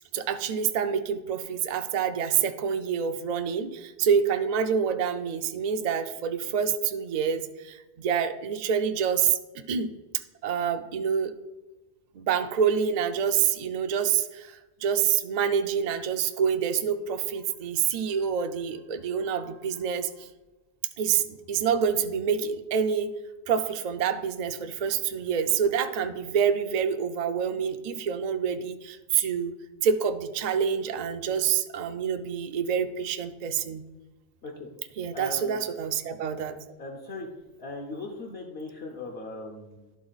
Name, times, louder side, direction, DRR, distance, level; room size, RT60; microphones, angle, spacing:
voice 1, 0.1-9.9 10.4-11.3 12.1-20.3 21.0-23.1 23.5-29.5 29.8-33.8 35.0-36.6, right 7 dB, 55° right, 8 dB, 0.5 m, -27 dB
voice 2, 35.1-35.6 36.8-37.3 37.6-39.9, left 2 dB, 65° left, 0 dB, 1.1 m, -39 dB
11.5 x 3.9 x 4.0 m, 1.1 s
omnidirectional pair, 1.2 m